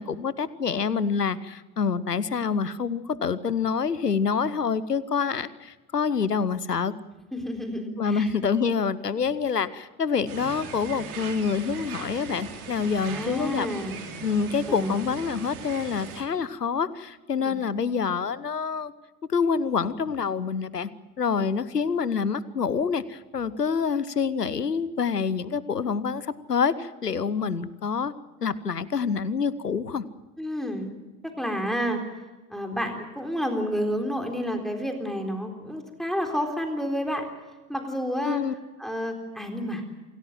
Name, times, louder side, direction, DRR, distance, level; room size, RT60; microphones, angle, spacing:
voice 1, 0.0-6.9 8.0-13.7 14.2-18.9 19.3-20.9 21.2-28.1 28.4-30.0 38.2-38.5, left 6 dB, 85° left, 18 dB, 1.0 m, -27 dB
voice 2, 7.3-8.3 13.0-14.0 14.7-15.0 17.4-17.6 21.3-21.4 30.4-30.9 31.4-32.0 32.5-37.2 37.7-38.4 38.8-39.8, equal, ahead, 3 dB, 3.8 m, -30 dB
sound 1, 10.3-16.2, right 6 dB, 65° right, 3.8 m, -39 dB
28.0 x 18.0 x 7.5 m, 1.2 s
figure-of-eight pair, 65°, 46 cm